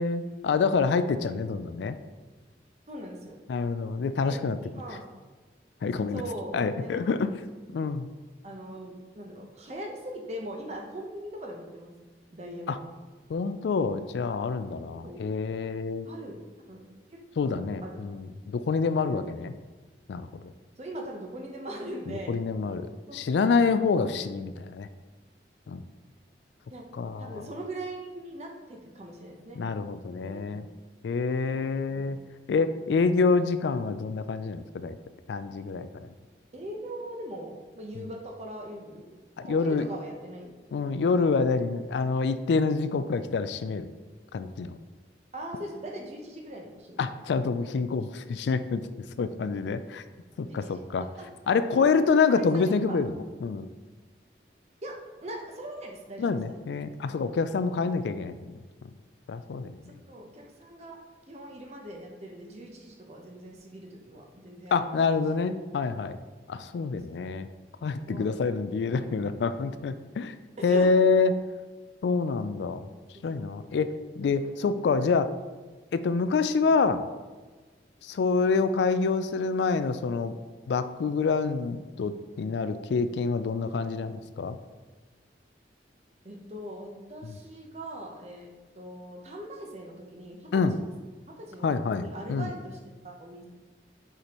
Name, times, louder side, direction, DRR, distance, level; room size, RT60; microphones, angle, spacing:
voice 1, 0.0-2.0 3.5-4.6 5.8-6.2 6.5-7.3 7.7-8.1 12.7-12.8 13.3-16.1 17.4-19.5 20.1-20.5 22.1-24.9 25.7-25.8 27.0-27.4 29.6-30.6 31.0-32.2 32.5-35.0 35.3-36.1 39.4-39.9 40.7-43.9 44.3-44.8 47.0-48.9 49.2-50.0 50.4-51.1 51.5-53.1 53.4-53.7 56.2-58.6 59.3-59.7 64.7-66.2 66.5-67.5 67.8-70.3 70.6-71.4 72.0-72.9 73.2-75.3 75.9-77.0 78.0-80.4 80.7-84.6 90.5-90.7 91.6-92.0 92.3-92.5, left 4 dB, 75° left, 12 dB, 0.3 m, -27 dB
voice 2, 2.9-3.4 4.2-4.4 4.8-5.0 6.1-7.1 8.4-11.9 12.3-12.8 15.0-15.2 16.0-16.4 16.7-16.8 17.1-17.2 17.5-18.0 19.0-19.2 20.8-22.4 23.1-23.2 24.1-24.3 26.7-26.9 27.2-29.6 30.2-30.5 31.5-32.2 36.5-40.6 45.3-47.1 50.3-51.3 51.7-51.9 52.5-53.0 54.8-56.6 57.9-58.0 60.1-61.0 61.3-65.1 68.1-68.3 68.9-69.2 70.6-70.9 73.1-73.5 74.4-74.6 86.2-90.6 91.1-92.8 93.0-93.5, right 1 dB, 35° right, 1 dB, 0.8 m, -41 dB
6.6 x 5.0 x 3.0 m, 1.3 s
head